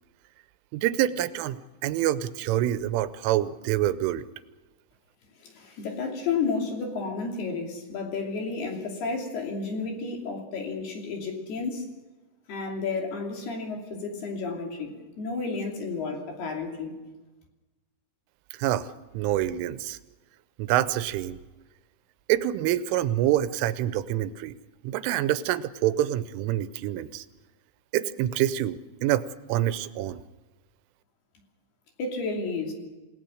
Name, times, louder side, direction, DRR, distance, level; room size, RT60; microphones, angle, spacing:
voice 1, 0.7-4.3 18.5-20.0 20.6-21.4 22.3-24.6 24.8-27.3 27.9-30.2, right 13 dB, 90° right, 14 dB, 3.4 m, -26 dB
voice 2, 5.4-11.9 12.5-17.0 32.0-32.7, left 4 dB, 60° left, 1 dB, 4.7 m, -32 dB
28.5 x 17.5 x 6.4 m, 1.2 s
omnidirectional pair, 5.5 m